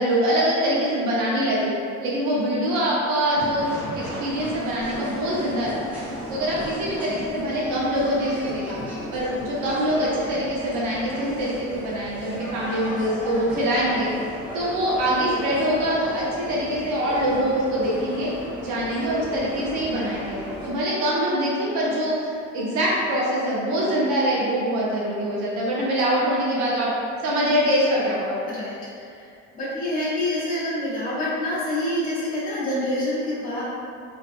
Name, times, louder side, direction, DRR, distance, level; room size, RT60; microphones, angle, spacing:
voice 1, 0.0-1.7 2.0-6.0 6.3-8.8 9.1-14.1 14.5-18.3 18.6-20.4 20.6-26.9 27.2-28.4, equal, 80° right, -5 dB, 0.8 m, -24 dB
sound 1, 3.4-20.7, equal, 5° right, 0.6 m, -35 dB
voice 2, 29.5-33.6, left 1 dB, 30° left, -9 dB, 0.8 m, -26 dB
2.5 x 2.3 x 2.5 m, 2.4 s
cardioid pair, 140°, 30 cm